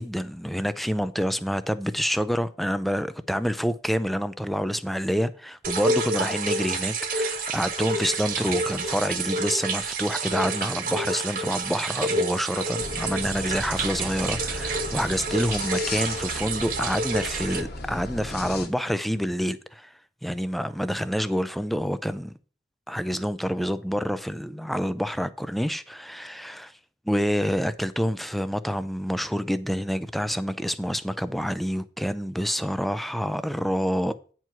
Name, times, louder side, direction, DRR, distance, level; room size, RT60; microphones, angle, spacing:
voice 1, 0.0-19.9 20.2-22.3 22.9-26.7 27.1-34.1, equal, ahead, 0.4 m, -27 dB
sound 1, 5.6-17.6, right 3 dB, 50° right, 1.4 m, -29 dB
sound 2, 12.8-18.7, left 2 dB, 60° left, 1.3 m, -36 dB
9.4 x 4.6 x 5.9 m
head